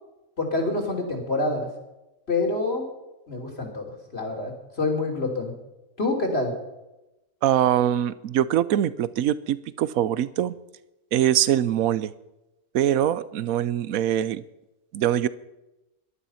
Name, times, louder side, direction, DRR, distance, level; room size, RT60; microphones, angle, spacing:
voice 1, 0.4-1.7 2.3-2.8 3.3-4.5 4.8-5.5 6.0-6.5, left 2 dB, 45° left, 2 dB, 3.4 m, -26 dB
voice 2, 7.4-10.5 11.1-12.1 12.7-14.4 14.9-15.3, right 11 dB, 75° right, 17 dB, 1.1 m, -23 dB
18.0 x 12.0 x 5.7 m, 0.96 s
omnidirectional pair, 1.5 m